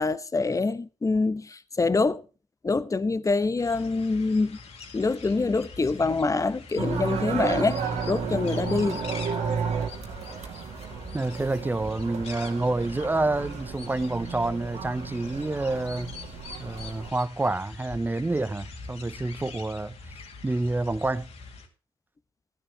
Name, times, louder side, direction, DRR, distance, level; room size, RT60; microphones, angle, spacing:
voice 1, 0.0-2.2 2.6-4.6 4.9-9.0, left 3 dB, 25° left, 1.1 m, -25 dB
sound 1, 3.6-21.7, left 4 dB, 65° left, 2.8 m, -44 dB
sound 2, 6.8-17.1, right 6 dB, 65° right, 2.1 m, -33 dB
voice 2, 11.1-16.1 16.6-19.9 20.4-21.3, right 2 dB, 15° right, 0.8 m, -28 dB
15.5 x 10.5 x 3.4 m
hypercardioid pair, 45°, 12 cm